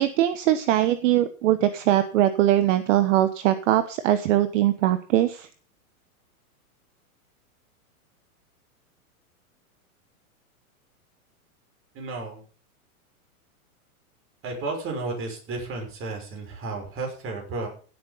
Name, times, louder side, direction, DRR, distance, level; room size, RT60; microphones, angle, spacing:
voice 1, 0.0-5.5, right 13 dB, 55° right, 12 dB, 1.3 m, -21 dB
voice 2, 11.9-12.4 14.4-17.7, right 3 dB, 30° right, 2 dB, 6.2 m, -32 dB
17.0 x 8.1 x 5.6 m, 0.39 s
hypercardioid pair, 130°, 43 cm